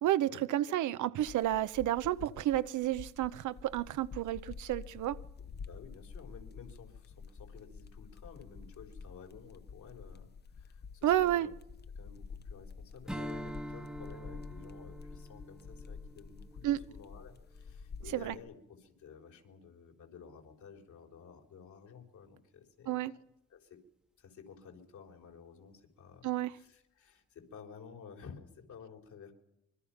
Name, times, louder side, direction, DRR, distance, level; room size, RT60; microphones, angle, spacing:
voice 1, 0.0-5.2 11.0-11.5 16.6-16.8 18.1-18.3 22.9-23.1 26.2-26.5, right 13 dB, 75° right, 0.8 m, -31 dB
sound 1, 1.2-18.3, left 5 dB, 35° left, 0.8 m, -49 dB
voice 2, 5.4-11.5 12.0-23.2 23.5-23.8 24.2-29.3, left 6 dB, 75° left, 4.1 m, -53 dB
Strum, 13.0-17.7, equal, ahead, 1.1 m, -45 dB
25.0 x 22.5 x 5.8 m
cardioid pair, 90°, 30 cm